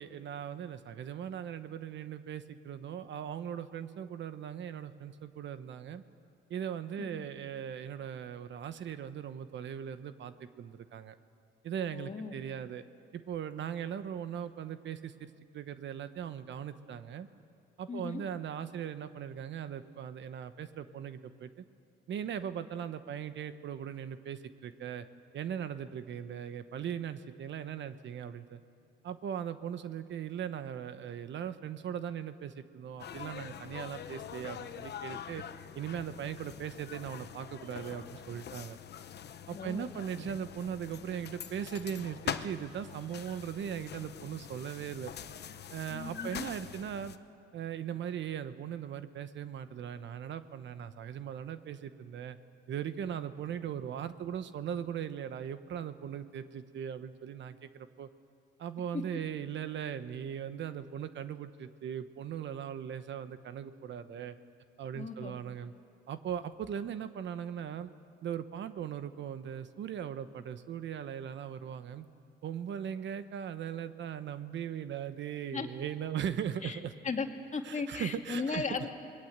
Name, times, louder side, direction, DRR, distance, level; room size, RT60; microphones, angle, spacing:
voice 1, 0.0-6.0 6.5-11.1 11.6-12.8 13.1-17.3 17.8-21.6 22.1-25.1 25.3-28.6 29.0-35.4 35.7-38.8 39.5-45.1 45.7-47.1 47.5-52.4 52.7-58.1 58.6-64.4 64.8-65.7 66.1-67.9 68.2-72.0 72.4-76.9 77.6-78.7, right 9 dB, 65° right, 11 dB, 1.1 m, -39 dB
voice 2, 11.9-12.4 17.9-18.2 39.5-40.0 45.9-46.5 64.9-65.4 75.5-75.7 76.6-76.8 77.0-79.0, left 4 dB, 40° left, 4 dB, 2.2 m, -37 dB
sound 1, 33.0-47.2, left 9 dB, 55° left, 1.0 m, -44 dB
27.5 x 21.0 x 8.1 m, 2.4 s
cardioid pair, 90°, 20 cm